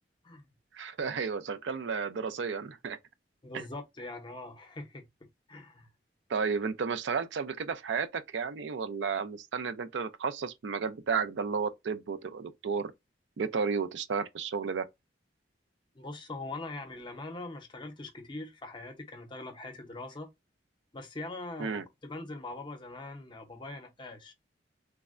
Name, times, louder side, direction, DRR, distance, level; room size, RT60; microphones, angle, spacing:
voice 1, 0.7-3.0 3.5-3.6 6.3-12.9 13.4-14.8 21.6-21.8, right 5 dB, 75° right, 0.4 m, -32 dB
voice 2, 3.4-5.1 5.5-5.9 13.4-13.5 15.9-20.3 20.9-24.3, left 2 dB, 25° left, 0.6 m, -42 dB
3.3 x 2.1 x 2.4 m
head